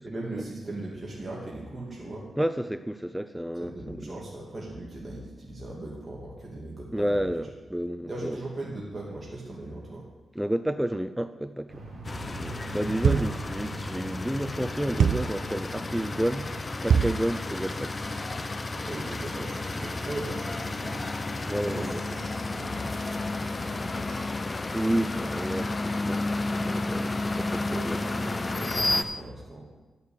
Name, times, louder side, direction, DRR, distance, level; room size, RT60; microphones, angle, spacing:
voice 1, 0.0-2.2 3.6-7.1 8.1-10.0 12.9-13.3 18.8-21.0 21.6-24.4 27.7-29.7, right 1 dB, 25° right, -5 dB, 2.5 m, -39 dB
voice 2, 2.4-4.2 6.9-8.4 10.3-11.8 12.2-16.5 16.8-17.9 21.4-22.0 24.7-26.2 26.6-28.0, right 1 dB, 5° right, 10 dB, 0.5 m, -30 dB
sound 1, 11.7-18.5, right 2 dB, 65° right, 3.6 m, -44 dB
sound 2, 12.1-29.0, left 2 dB, 30° left, 0.7 m, -32 dB
sound 3, 13.0-13.5 15.0-15.4 16.9-17.3, right 7 dB, 85° right, 0.3 m, -23 dB
11.5 x 6.8 x 8.5 m, 1.2 s
wide cardioid pair, 110°, 0 cm